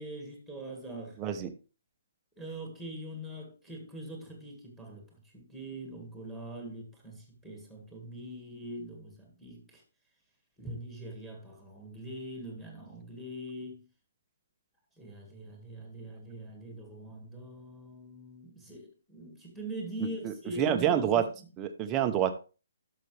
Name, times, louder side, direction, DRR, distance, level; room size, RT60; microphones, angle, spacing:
voice 1, 0.0-1.2 2.4-9.8 10.6-13.9 15.0-21.3, right 1 dB, 5° left, 1.9 m, -43 dB
voice 2, 1.2-1.5 20.0-21.3 21.6-22.4, right 9 dB, 15° right, 0.7 m, -28 dB
11.0 x 6.6 x 3.3 m
hypercardioid pair, 170°, 0 cm